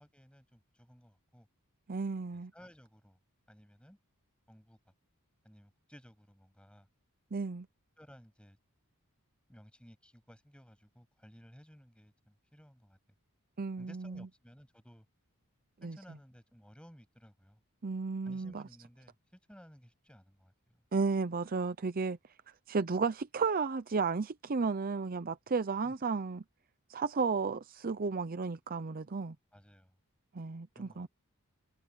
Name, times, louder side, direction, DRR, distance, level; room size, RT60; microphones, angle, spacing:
voice 1, 0.0-1.5 2.3-3.2 3.5-4.0 4.5-4.9 5.4-6.9 8.0-8.6 9.5-13.0 13.8-15.1 15.8-17.6 18.2-20.9 25.8-25.9 29.5-30.0 30.7-31.1, equal, 5° left, 7.6 m, -57 dB
voice 2, 1.9-2.5 7.3-7.7 13.6-14.2 15.8-16.0 17.8-18.6 20.9-22.2 22.7-26.4 26.9-29.4 30.3-31.1, right 4 dB, 40° right, 0.6 m, -33 dB
head